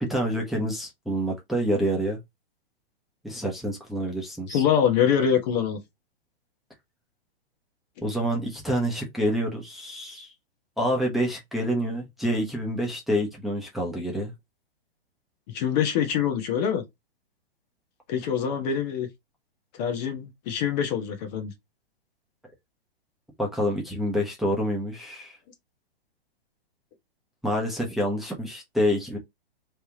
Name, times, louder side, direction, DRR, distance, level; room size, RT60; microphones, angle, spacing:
voice 1, 0.0-2.2 3.2-4.6 8.0-10.3 10.8-14.3 23.4-25.4 27.4-29.2, equal, ahead, 1.1 m, -27 dB
voice 2, 4.5-5.8 15.5-16.8 18.1-19.1 19.8-21.5, left 8 dB, 45° left, 1.2 m, -24 dB
3.4 x 3.3 x 2.9 m
hypercardioid pair, 120°, 31 cm